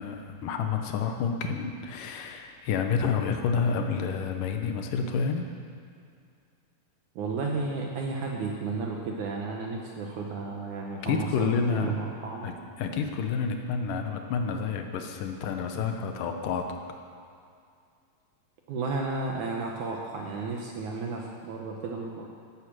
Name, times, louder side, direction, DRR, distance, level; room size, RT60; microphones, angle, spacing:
voice 1, 0.0-5.4 11.0-12.0 12.4-16.7, left 5 dB, 70° left, 5 dB, 2.6 m, -29 dB
voice 2, 7.2-12.5 18.7-22.3, right 3 dB, 65° right, 0 dB, 2.3 m, -33 dB
11.5 x 11.0 x 7.5 m, 2.3 s
omnidirectional pair, 4.1 m